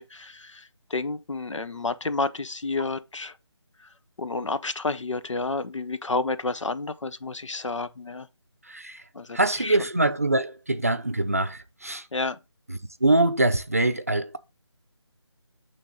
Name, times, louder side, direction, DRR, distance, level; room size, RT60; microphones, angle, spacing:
voice 1, 0.0-3.3 3.8-3.9 4.2-8.3 9.1-9.8 12.1-12.4, left 3 dB, 90° left, 1.0 m, -30 dB
voice 2, 8.6-9.0 9.3-12.1 12.7-14.4, right 2 dB, 30° right, 0.5 m, -24 dB
8.8 x 3.5 x 5.2 m
figure-of-eight pair, 175°, 15 cm